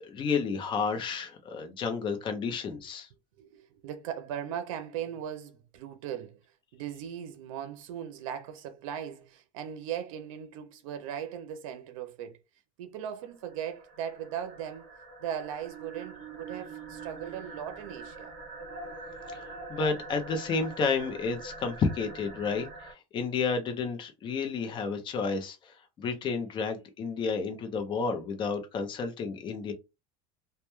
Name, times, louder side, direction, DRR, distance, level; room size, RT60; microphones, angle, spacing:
voice 1, 0.0-3.1 19.3-29.7, left 5 dB, 30° left, 0.5 m, -31 dB
voice 2, 3.4-6.4 6.7-12.4 12.8-14.9 15.2-18.3, right 9 dB, 90° right, 0.5 m, -38 dB
sound 1, 13.3-22.9, right 3 dB, 45° right, 0.9 m, -44 dB
2.1 x 2.1 x 2.9 m
supercardioid pair, 135°, 17 cm